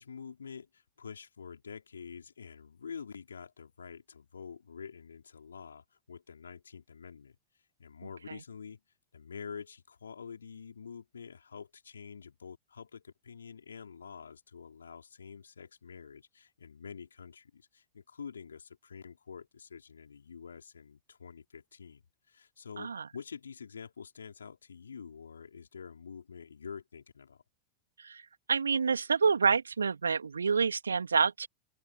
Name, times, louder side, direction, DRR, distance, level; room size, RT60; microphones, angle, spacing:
voice 1, 0.0-7.4 7.8-8.8 9.1-22.0 22.3-27.4, left 6 dB, 70° left, 4.7 m, -47 dB
voice 2, 28.5-31.5, right 5 dB, 75° right, 2.8 m, -28 dB
open air
figure-of-eight pair, 90°, 0 cm